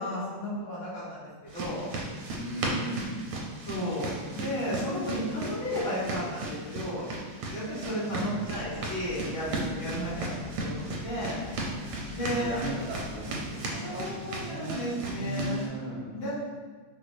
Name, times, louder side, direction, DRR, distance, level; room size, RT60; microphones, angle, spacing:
voice 1, 0.0-1.8 3.6-7.1 7.5-10.3 10.6-11.3 12.1-12.7 13.8-15.7 16.1-16.4, equal, 40° left, -9 dB, 0.9 m, -33 dB
sound 1, 1.5-15.7, right 2 dB, 90° right, 1.5 m, -36 dB
voice 2, 2.3-3.2 8.0-8.5 10.0-10.3 11.9-16.1, right 1 dB, 75° right, -6 dB, 1.0 m, -38 dB
sound 2, 8.4-13.5, left 1 dB, 80° left, 1.9 m, -45 dB
4.5 x 2.2 x 2.6 m, 1.5 s
omnidirectional pair, 2.4 m